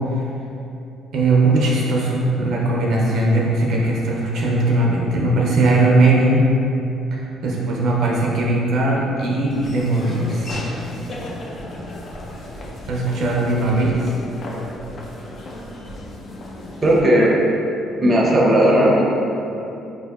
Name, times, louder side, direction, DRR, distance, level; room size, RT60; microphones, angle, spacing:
voice 1, 1.1-6.4 7.1-10.5 12.9-14.0, right 2 dB, 70° right, -3 dB, 0.5 m, -19 dB
Laughter / Walk footsteps, 9.5-17.0, left 1 dB, 45° left, 0.4 m, -34 dB
voice 2, 16.8-17.3 18.0-19.0, right 1 dB, 25° right, -4 dB, 0.6 m, -15 dB
3.9 x 2.7 x 2.3 m, 2.8 s
cardioid pair, 115°, 0 cm